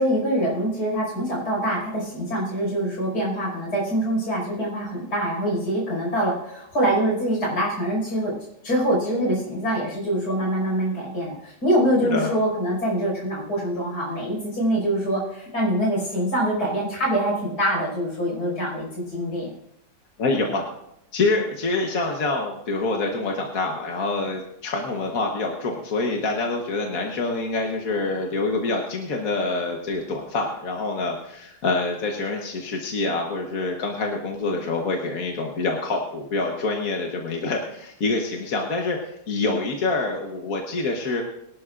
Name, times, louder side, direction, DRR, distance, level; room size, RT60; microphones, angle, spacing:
voice 1, 0.0-8.3 8.6-19.5, right 1 dB, 80° left, -3 dB, 6.0 m, -24 dB
voice 2, 12.0-12.3 20.2-20.7 21.1-41.2, left 3 dB, 60° left, 1 dB, 1.6 m, -26 dB
23.0 x 11.5 x 2.5 m, 0.81 s
omnidirectional pair, 1.7 m